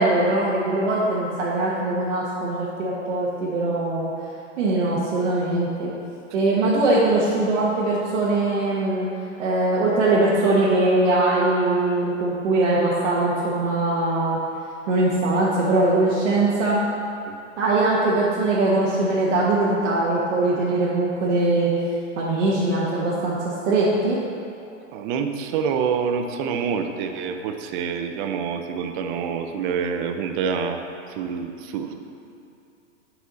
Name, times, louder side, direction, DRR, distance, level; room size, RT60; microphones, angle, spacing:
voice 1, 0.0-4.1 4.6-5.9 6.3-9.1 9.4-14.4 14.9-16.9 17.6-21.7 22.2-24.2, right 2 dB, 65° right, -7 dB, 1.5 m, -21 dB
voice 2, 24.9-30.8 31.1-31.9, right 6 dB, 40° right, 6 dB, 0.6 m, -27 dB
9.2 x 4.9 x 4.0 m, 2.7 s
hypercardioid pair, 130°, 38 cm